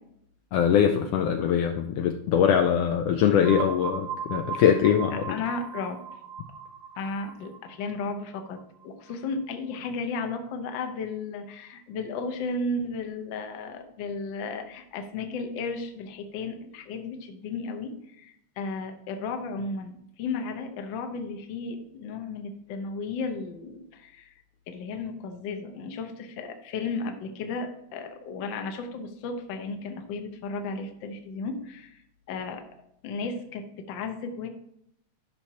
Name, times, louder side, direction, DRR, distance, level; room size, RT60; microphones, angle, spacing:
voice 1, 0.5-5.4, left 8 dB, 90° left, 4 dB, 1.3 m, -22 dB
sound 1, 3.4-9.1, right 7 dB, 75° right, 1.3 m, -38 dB
voice 2, 5.3-6.0 7.0-32.0 32.3-32.6 33.0-34.5, left 3 dB, 70° left, 5 dB, 1.1 m, -34 dB
13.0 x 5.9 x 2.9 m, 0.76 s
omnidirectional pair, 3.4 m